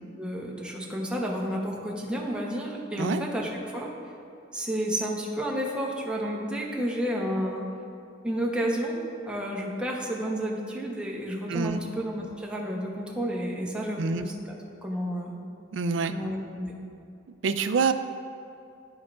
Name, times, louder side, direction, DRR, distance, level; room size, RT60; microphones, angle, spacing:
voice 1, 0.2-3.9 4.5-7.7 8.2-9.0 9.3-14.6 14.8-15.4 16.1-16.7, equal, 5° right, -3 dB, 0.9 m, -31 dB
voice 2, 11.5-11.8 14.0-14.3 15.7-16.1 17.4-17.9, right 5 dB, 70° right, 10 dB, 0.4 m, -26 dB
13.0 x 4.6 x 2.5 m, 2.5 s
head